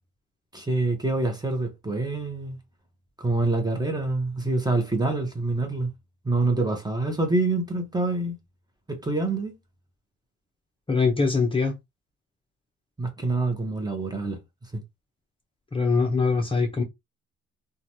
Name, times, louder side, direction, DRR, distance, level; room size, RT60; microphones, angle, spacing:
voice 1, 0.5-2.6 3.2-5.9 6.2-8.4 8.9-9.5 13.0-14.4 14.7-14.8, right 2 dB, 15° right, 1.0 m, -26 dB
voice 2, 10.9-11.8 15.7-16.8, left 4 dB, 15° left, 0.7 m, -23 dB
3.0 x 2.3 x 2.7 m
cardioid pair, 90°, 30 cm